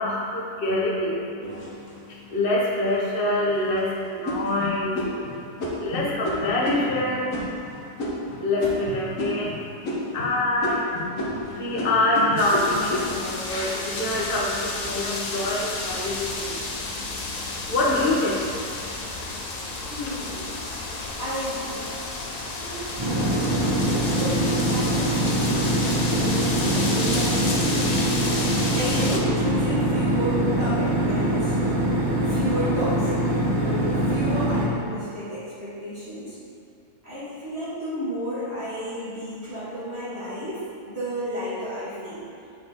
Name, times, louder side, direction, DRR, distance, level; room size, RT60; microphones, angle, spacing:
voice 1, 0.0-5.0 5.6-7.9 8.4-10.9 11.4-18.7 19.2-19.4, left 2 dB, 40° left, -4 dB, 1.1 m, -26 dB
sound 1, 1.4-2.3 2.9-3.0 3.5-3.8 4.3-9.6 9.8-10.3 10.6-14.9 15.4-15.9, left 1 dB, 60° left, 1.5 m, -31 dB
sound 2, 12.4-29.2, left 3 dB, 80° left, 0.3 m, -31 dB
voice 2, 19.9-20.5 21.2-21.9 22.6-23.7 24.0-27.8 28.7-31.6 32.3-36.4 37.0-42.2, equal, 45° right, -12 dB, 1.8 m, -32 dB
sound 3, 23.0-34.7, right 1 dB, 30° right, 0.5 m, -23 dB
7.9 x 4.2 x 3.6 m, 2.5 s
omnidirectional pair, 1.6 m